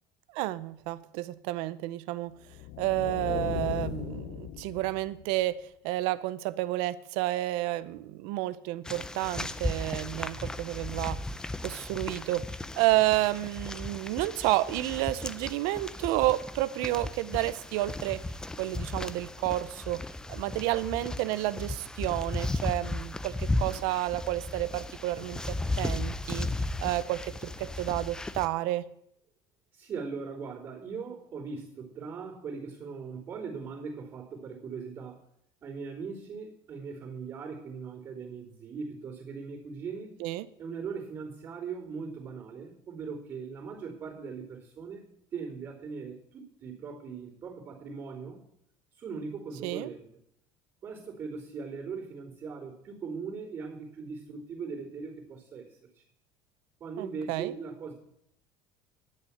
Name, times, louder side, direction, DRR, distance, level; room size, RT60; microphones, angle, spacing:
voice 1, 0.3-2.3 2.8-5.6 5.8-11.2 11.6-12.4 12.8-18.2 18.6-20.0 20.3-26.5 26.8-28.8 40.2-40.5 49.6-49.9 57.0-57.5, right 17 dB, 75° right, 16 dB, 0.7 m, -30 dB
sound 1, 2.4-5.4, left 12 dB, 55° left, 0.9 m, -37 dB
sound 2, 8.8-28.5, left 2 dB, 10° left, 0.5 m, -36 dB
voice 2, 29.7-35.2 35.6-40.2 40.6-45.0 45.3-48.4 49.0-50.1 50.8-56.0 56.8-57.9, right 5 dB, 35° right, -10 dB, 3.4 m, -40 dB
11.0 x 6.4 x 8.7 m, 0.73 s
cardioid pair, 155°, 9 cm